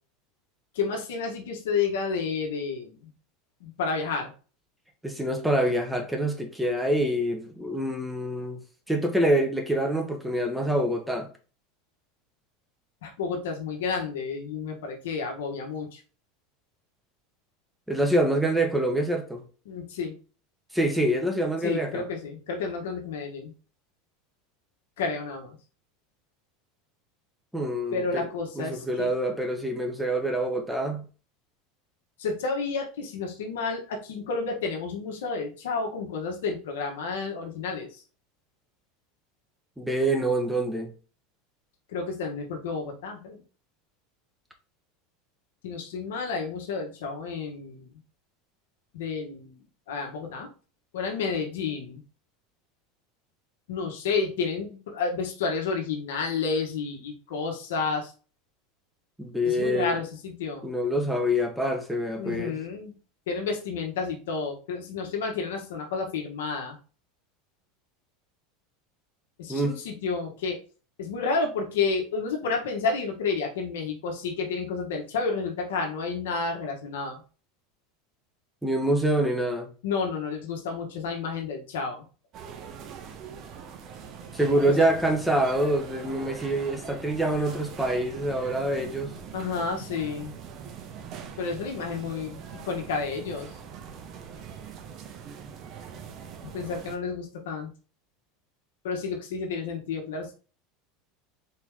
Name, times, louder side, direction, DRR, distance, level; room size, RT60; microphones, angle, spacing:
voice 1, 0.7-3.1 3.6-4.3 13.0-16.0 19.6-20.1 21.6-23.5 25.0-25.6 27.9-29.1 32.2-38.0 41.9-43.4 45.6-47.9 48.9-49.6 49.9-50.5 50.9-52.0 53.7-58.1 59.4-60.7 62.2-62.9 63.3-66.8 69.4-70.6 71.0-77.2 79.8-82.0 84.7-84.9 89.3-90.4 91.4-92.4 92.6-93.5 96.5-97.7 98.8-100.3, left 4 dB, 85° left, 1.3 m, -30 dB
voice 2, 5.0-8.6 8.9-11.3 17.9-19.4 20.7-22.0 27.5-28.3 28.6-31.0 39.8-40.9 59.2-60.0 60.6-62.6 69.5-69.7 78.6-79.7 84.3-89.1, right 1 dB, 5° right, 1.0 m, -26 dB
sound 1, 82.3-97.0, right 7 dB, 45° right, 0.8 m, -42 dB
4.5 x 3.0 x 3.6 m
supercardioid pair, 115°, 0 cm